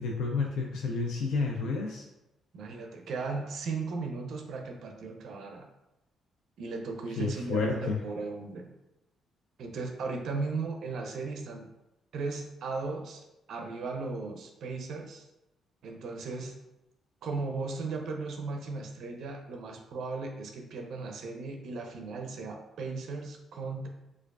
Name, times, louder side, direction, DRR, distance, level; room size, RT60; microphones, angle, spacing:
voice 1, 0.0-2.0 7.2-8.0, left 4 dB, 85° left, 0 dB, 0.3 m, -30 dB
voice 2, 2.5-5.7 6.6-8.7 9.6-11.7 12.1-15.2 15.8-16.5 17.2-23.9, right 3 dB, 70° right, 3 dB, 0.4 m, -36 dB
4.5 x 2.4 x 2.3 m, 0.92 s
cardioid pair, 90°, 0 cm